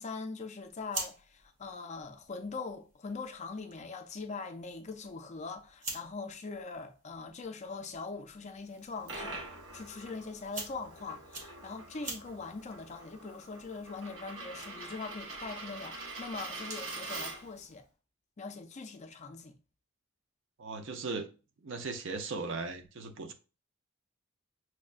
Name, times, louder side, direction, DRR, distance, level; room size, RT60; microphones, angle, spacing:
voice 1, 0.0-9.4 9.7-17.8 18.4-19.6, left 4 dB, 35° left, 0.4 m, -42 dB
sound 1, 0.6-17.0, right 2 dB, 40° right, 0.9 m, -48 dB
Coin (dropping), 8.7-17.6, right 3 dB, 90° right, 1.1 m, -44 dB
voice 2, 20.6-21.3 21.6-23.3, right 3 dB, 65° right, 0.6 m, -38 dB
6.1 x 2.1 x 2.4 m
head